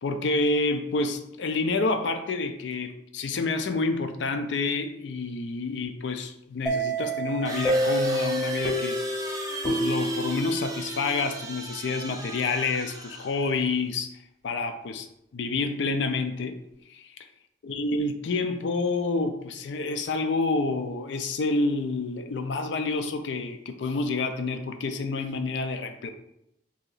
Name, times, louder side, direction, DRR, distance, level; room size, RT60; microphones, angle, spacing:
voice 1, 0.0-9.0 9.6-14.1 14.4-15.1 15.3-16.6 16.9-17.2 17.6-26.1, left 3 dB, 75° left, 7 dB, 0.4 m, -28 dB
sound 1, 5.8-5.9 7.5-13.6, right 2 dB, 20° right, 0.6 m, -37 dB
sound 2, 6.7-11.3, right 1 dB, ahead, 0.9 m, -28 dB
3.1 x 2.8 x 3.9 m, 0.81 s
head